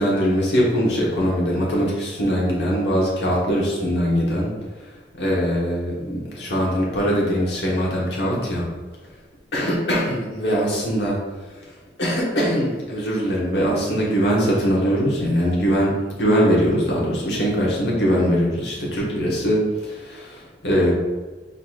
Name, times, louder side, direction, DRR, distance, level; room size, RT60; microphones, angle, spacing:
voice 1, 0.0-4.5 5.2-8.6 9.5-11.2 12.0-15.9 16.2-20.9, equal, 75° left, -4 dB, 1.3 m, -21 dB
4.3 x 4.0 x 2.4 m, 1.2 s
head